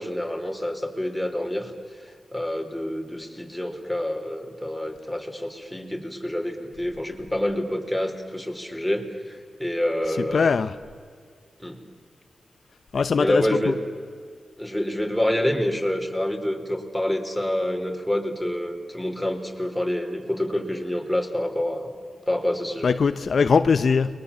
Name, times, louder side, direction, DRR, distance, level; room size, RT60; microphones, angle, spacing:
voice 1, 0.0-1.7 2.0-10.5 11.6-11.8 13.2-13.8 14.6-22.0 22.3-22.9, left 1 dB, ahead, 4.1 m, -27 dB
voice 2, 10.2-10.8 12.9-13.7 22.8-24.2, left 5 dB, 65° left, 0.8 m, -21 dB
30.0 x 22.5 x 7.4 m
cardioid pair, 80°, 0 cm